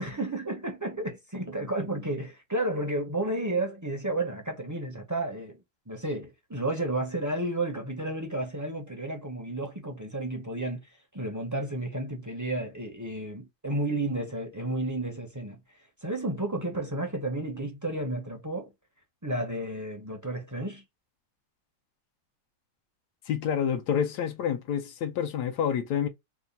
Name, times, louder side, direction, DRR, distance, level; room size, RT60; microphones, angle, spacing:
voice 1, 0.0-18.7 19.2-20.8, right 1 dB, 25° right, 0.4 m, -32 dB
voice 2, 23.3-26.1, left 8 dB, 85° left, 1.2 m, -28 dB
3.4 x 2.2 x 3.9 m
omnidirectional pair, 1.7 m